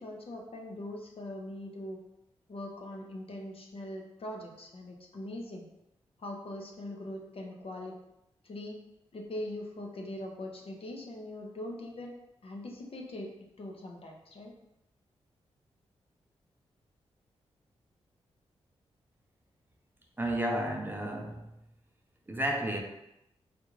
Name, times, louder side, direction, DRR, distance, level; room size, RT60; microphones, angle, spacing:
voice 1, 0.0-2.0 2.5-5.7 6.2-8.0 8.4-8.8 9.1-12.2 12.4-13.3 13.6-14.5, left 1 dB, 55° left, 1 dB, 0.7 m, -41 dB
voice 2, 20.2-21.5 22.3-22.8, right 1 dB, 20° right, 1 dB, 0.6 m, -32 dB
3.5 x 2.4 x 3.1 m, 0.87 s
cardioid pair, 55°, 11 cm